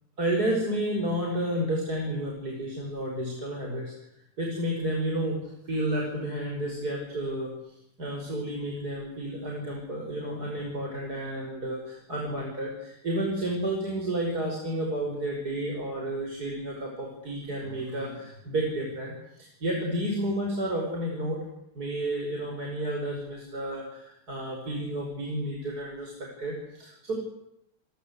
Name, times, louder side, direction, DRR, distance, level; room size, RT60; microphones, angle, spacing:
voice 1, 0.2-3.9 4.4-5.4 5.6-7.7 8.0-21.4 21.7-27.1, right 1 dB, 45° right, 0 dB, 6.0 m, -31 dB
28.0 x 23.5 x 8.3 m, 0.80 s
omnidirectional pair, 2.3 m